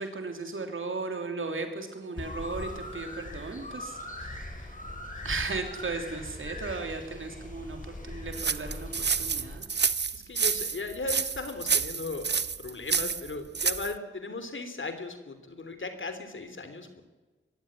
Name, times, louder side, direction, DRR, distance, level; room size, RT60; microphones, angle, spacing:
voice 1, 0.0-4.8 5.2-9.7, right 3 dB, 80° right, 5 dB, 3.2 m, -36 dB
sound 1, 2.2-9.6, left 1 dB, 40° left, 5.1 m, -40 dB
sound 2, 8.3-13.9, right 6 dB, 60° right, 0.7 m, -29 dB
voice 2, 10.1-17.0, left 3 dB, 75° left, 9 dB, 3.2 m, -37 dB
22.0 x 15.5 x 9.9 m, 1.3 s
cardioid pair, 40°, 20 cm